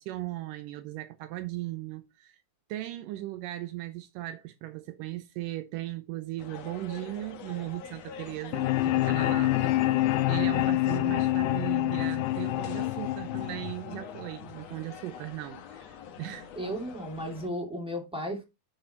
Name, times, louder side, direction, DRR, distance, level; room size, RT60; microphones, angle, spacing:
voice 1, 0.0-2.4 2.7-9.8 10.3-16.5, right 16 dB, 80° right, 2.2 m, -37 dB
sound 1, 6.4-17.5, left 8 dB, 60° left, 2.0 m, -46 dB
sound 2, 8.5-14.5, left 16 dB, 80° left, 1.9 m, -27 dB
voice 2, 16.6-18.4, equal, ahead, 2.1 m, -34 dB
9.9 x 4.5 x 4.3 m
omnidirectional pair, 3.9 m